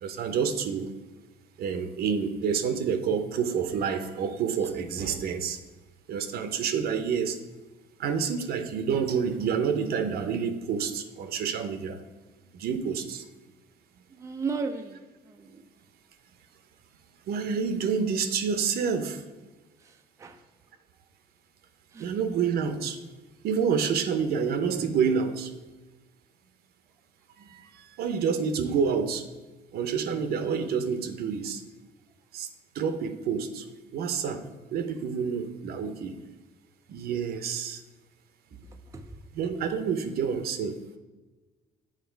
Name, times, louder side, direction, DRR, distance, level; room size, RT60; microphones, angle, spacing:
voice 1, 0.0-0.9 1.6-5.6 6.1-7.4 8.0-12.0 12.5-13.2 17.3-19.2 22.0-23.0 23.4-25.5 27.4-29.3 29.7-31.6 32.3-32.5 32.7-33.7 33.9-36.1 36.9-37.8 39.3-40.8, right 6 dB, 65° right, 8 dB, 0.8 m, -28 dB
voice 2, 14.2-15.0 15.3-15.6 20.2-20.4 21.9-22.1 38.9-39.0, right 4 dB, 20° right, 6 dB, 0.5 m, -33 dB
7.4 x 4.5 x 4.5 m, 1.2 s
cardioid pair, 110°, 17 cm